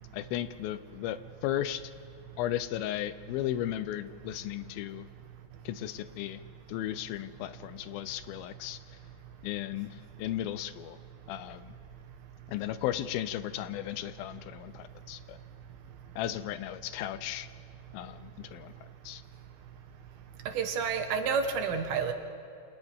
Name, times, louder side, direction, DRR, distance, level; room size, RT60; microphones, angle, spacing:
voice 1, 0.1-1.8 2.4-5.1 5.7-6.4 6.7-8.8 9.4-11.0 11.3-11.8 12.5-15.4 16.2-17.5 17.9-18.7 19.1-19.2, left 12 dB, 85° left, 13 dB, 2.6 m, -35 dB
voice 2, 20.5-22.1, right 6 dB, 90° right, 5 dB, 3.4 m, -29 dB
29.0 x 26.5 x 3.6 m, 2.8 s
omnidirectional pair, 4.2 m